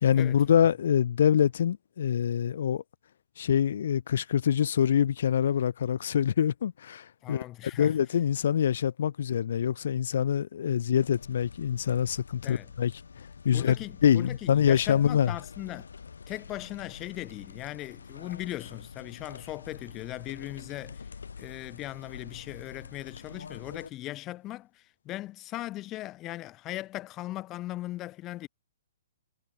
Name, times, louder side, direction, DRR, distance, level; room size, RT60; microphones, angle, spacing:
voice 1, 0.0-2.8 3.4-7.4 7.8-12.9 13.4-13.8 14.0-15.3, left 9 dB, 65° left, 1.3 m, -25 dB
voice 2, 7.2-7.9 12.4-12.7 13.5-15.9 16.3-21.0 21.4-28.5, left 16 dB, 25° left, 6.7 m, -39 dB
sound 1, 10.9-23.9, left 5 dB, 85° left, 5.0 m, -46 dB
hypercardioid pair, 150°, 0 cm